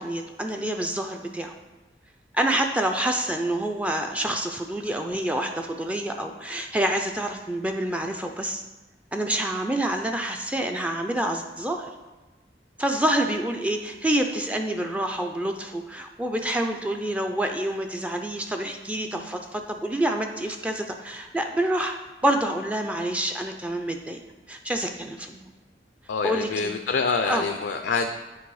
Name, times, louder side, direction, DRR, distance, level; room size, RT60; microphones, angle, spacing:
voice 1, 0.0-1.5 2.3-8.6 9.1-11.9 12.8-24.2 24.5-25.5 26.2-26.7 27.2-27.5, right 1 dB, 10° right, 4 dB, 0.3 m, -27 dB
voice 2, 26.1-28.1, left 4 dB, 70° left, 6 dB, 0.4 m, -26 dB
8.5 x 3.3 x 4.7 m, 1.2 s
head